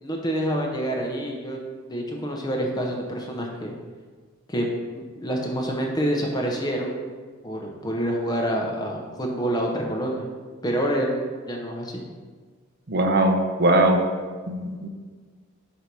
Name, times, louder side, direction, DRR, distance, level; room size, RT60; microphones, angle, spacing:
voice 1, 0.0-1.6 1.9-3.7 4.5-4.7 4.9-7.0 7.4-10.3 10.6-12.0, right 1 dB, 20° left, 0 dB, 0.7 m, -27 dB
voice 2, 12.9-14.0 14.5-14.9, right 1 dB, 45° right, 3 dB, 0.6 m, -20 dB
4.6 x 4.3 x 5.3 m, 1.5 s
head